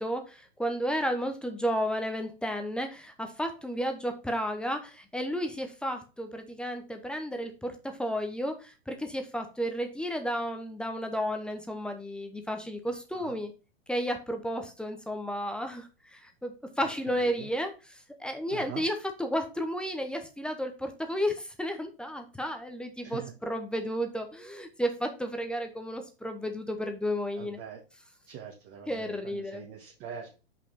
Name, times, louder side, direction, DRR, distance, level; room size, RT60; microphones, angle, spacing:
voice 1, 0.0-7.7 8.0-13.5 13.9-17.7 18.2-18.9 19.2-23.2 23.5-27.6 28.9-29.6, equal, 5° left, 5 dB, 0.8 m, -32 dB
voice 2, 16.8-17.5 18.5-18.8 23.0-23.3 27.3-27.8 28.2-30.4, right 8 dB, 35° right, -1 dB, 1.6 m, -44 dB
5.7 x 5.2 x 3.8 m, 0.31 s
figure-of-eight pair, 105°, 32 cm